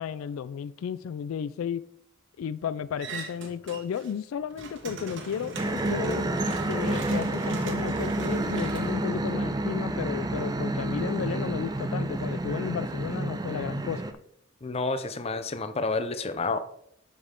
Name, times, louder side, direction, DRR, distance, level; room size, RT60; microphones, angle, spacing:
voice 1, 0.0-1.8 2.4-6.2 6.7-14.0, left 7 dB, 85° left, 0.3 m, -33 dB
sound 1, 3.0-4.1 4.4-9.8, right 3 dB, 60° right, 1.2 m, -39 dB
sound 2, 5.6-14.1, right 1 dB, 20° right, 0.5 m, -29 dB
voice 2, 14.6-16.6, left 3 dB, 30° left, 0.5 m, -29 dB
8.0 x 6.4 x 3.7 m
head